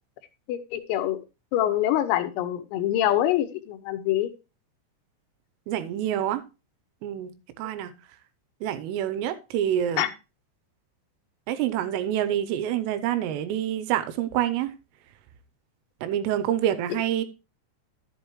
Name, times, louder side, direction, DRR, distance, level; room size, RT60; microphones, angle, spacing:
voice 1, 0.5-1.2 1.5-4.3 10.0-10.1 16.9-17.0, left 12 dB, 85° left, 3.6 m, -25 dB
voice 2, 5.7-6.4 7.0-7.3 7.6-7.9 8.6-10.1 11.5-14.7 16.0-17.2, right 11 dB, 80° right, 3.3 m, -27 dB
11.5 x 7.9 x 3.1 m
omnidirectional pair, 6.0 m